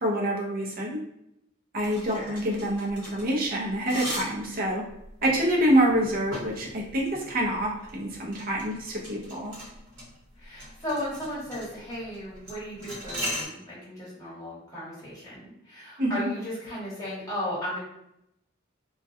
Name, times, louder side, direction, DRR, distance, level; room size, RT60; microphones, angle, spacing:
voice 1, 0.0-1.0 1.7-4.8 5.2-9.5 16.0-16.3, right 1 dB, 45° right, -2 dB, 0.6 m, -26 dB
sound 1, 1.8-13.5, equal, 65° right, 1.2 m, -39 dB
voice 2, 2.0-2.5 10.4-17.8, left 1 dB, 15° left, -9 dB, 1.2 m, -35 dB
2.3 x 2.2 x 2.7 m, 0.80 s
head